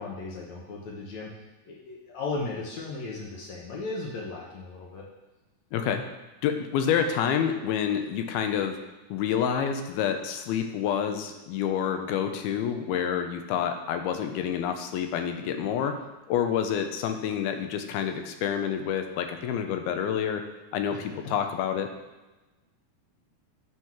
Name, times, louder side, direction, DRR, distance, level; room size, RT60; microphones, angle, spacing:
voice 1, 0.0-1.3 1.7-5.1 20.9-21.3, left 3 dB, 65° left, -3 dB, 1.9 m, -36 dB
voice 2, 5.7-6.0 6.4-8.8 9.1-16.0 16.3-20.4 20.7-21.9, left 8 dB, 85° left, 6 dB, 2.6 m, -28 dB
7.9 x 4.7 x 5.8 m, 1.1 s
omnidirectional pair, 4.3 m